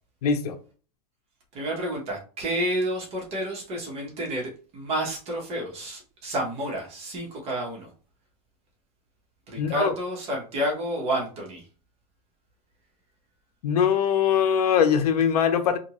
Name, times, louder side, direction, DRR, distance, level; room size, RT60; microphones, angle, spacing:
voice 1, 0.2-0.6 9.6-9.9 13.6-15.8, left 7 dB, 70° left, 0.7 m, -22 dB
voice 2, 1.5-7.9 9.5-11.7, right 1 dB, 30° right, 0.9 m, -30 dB
2.7 x 2.6 x 2.9 m
supercardioid pair, 150°, 20 cm